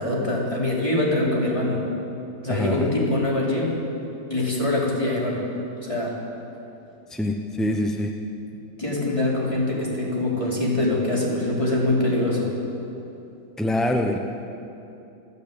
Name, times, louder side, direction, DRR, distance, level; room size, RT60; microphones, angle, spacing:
voice 1, 0.0-1.8 2.4-3.8 4.3-5.4 5.8-6.1 8.8-12.5, left 2 dB, 15° left, -4 dB, 4.2 m, -24 dB
voice 2, 2.5-2.9 7.1-8.1 13.6-14.2, left 1 dB, ahead, 3 dB, 0.5 m, -24 dB
27.5 x 11.0 x 8.8 m, 2.8 s
omnidirectional pair, 1.8 m